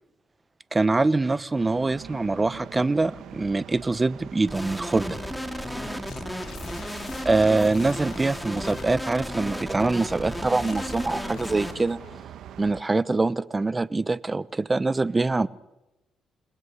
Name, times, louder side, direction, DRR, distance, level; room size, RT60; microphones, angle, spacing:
voice 1, 0.7-5.2 7.2-12.0 12.6-15.5, right 3 dB, 20° right, 17 dB, 1.0 m, -24 dB
sound 1, 1.6-12.8, right 9 dB, 75° right, 1.7 m, -44 dB
sound 2, 4.5-11.7, equal, ahead, 3.0 m, -34 dB
sound 3, 6.1-9.0 10.1-12.3, left 8 dB, 70° left, 2.3 m, -45 dB
29.0 x 20.0 x 9.7 m, 1.0 s
cardioid pair, 90°, 0 cm